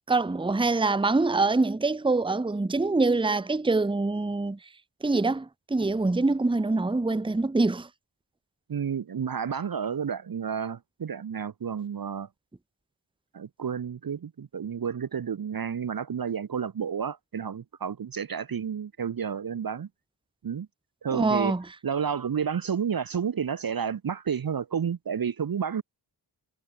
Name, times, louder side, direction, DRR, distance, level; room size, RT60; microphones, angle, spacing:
voice 1, 0.1-4.6 5.0-7.9 21.1-21.6, right 3 dB, 10° right, 0.7 m, -25 dB
voice 2, 8.7-12.3 13.3-19.9 20.4-20.7 21.0-21.5 21.8-25.8, right 7 dB, 50° right, 0.7 m, -31 dB
wide cardioid pair, 100°, 46 cm